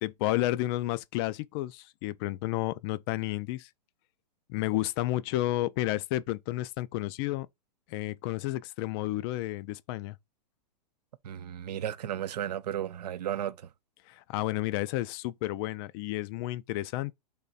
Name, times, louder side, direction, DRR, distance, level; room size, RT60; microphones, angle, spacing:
voice 1, 0.0-3.7 4.5-7.5 7.9-10.2 14.1-17.1, left 16 dB, 35° left, 0.4 m, -31 dB
voice 2, 11.2-13.7, right 10 dB, 75° right, 0.6 m, -34 dB
3.5 x 3.0 x 4.1 m
hypercardioid pair, 125°, 21 cm